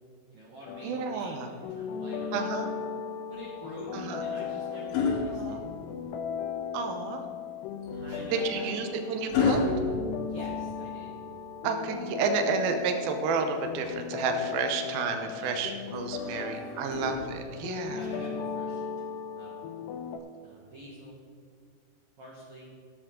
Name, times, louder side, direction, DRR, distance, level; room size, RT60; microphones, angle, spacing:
voice 1, 0.3-2.7 3.3-5.6 7.9-8.8 10.3-11.1 15.1-15.9 16.2-16.5 16.8-16.9 17.6-18.8 19.3-19.6 20.4-21.2 22.2-22.7, right 1 dB, 55° right, -5 dB, 2.3 m, -47 dB
sound 1, 0.7-20.2, left 6 dB, 90° left, 2.8 m, -37 dB
voice 2, 0.8-1.5 2.3-2.7 3.9-4.2 5.3-5.6 6.7-7.3 8.3-9.6 11.6-18.0, right 5 dB, 75° right, 5 dB, 2.4 m, -31 dB
sound 2, 3.8-6.3 7.8-11.0 12.8-14.0 15.9-17.8 19.0-19.2, left 4 dB, 65° left, 2.7 m, -33 dB
18.5 x 7.3 x 3.8 m, 2.1 s
omnidirectional pair, 4.7 m